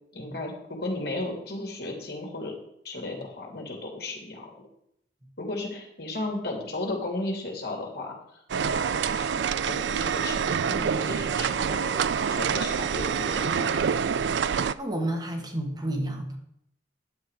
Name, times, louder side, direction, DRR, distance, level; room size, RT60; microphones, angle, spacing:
voice 1, 0.1-2.6 2.8-4.5 5.4-8.2 8.6-12.0 12.3-13.9, left 2 dB, 60° left, 0 dB, 2.8 m, -35 dB
sound 1, 8.5-14.7, right 7 dB, 75° right, 0.4 m, -26 dB
voice 2, 14.8-16.4, right 1 dB, 25° right, 2 dB, 1.6 m, -31 dB
10.5 x 7.8 x 4.9 m, 0.74 s
head